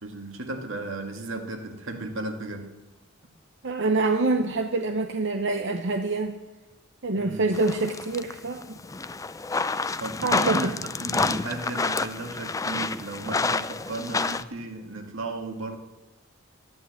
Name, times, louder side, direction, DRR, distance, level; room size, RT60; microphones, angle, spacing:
voice 1, 0.0-2.8 7.2-7.6 10.0-10.7 11.0-15.8, right 2 dB, 85° right, 4 dB, 2.1 m, -35 dB
voice 2, 3.6-6.4 7.0-8.6 10.2-10.7, right 3 dB, 65° right, 6 dB, 0.9 m, -26 dB
sound 1, 7.5-14.4, left 3 dB, 15° left, 0.4 m, -29 dB
14.0 x 10.5 x 8.1 m, 1.1 s
head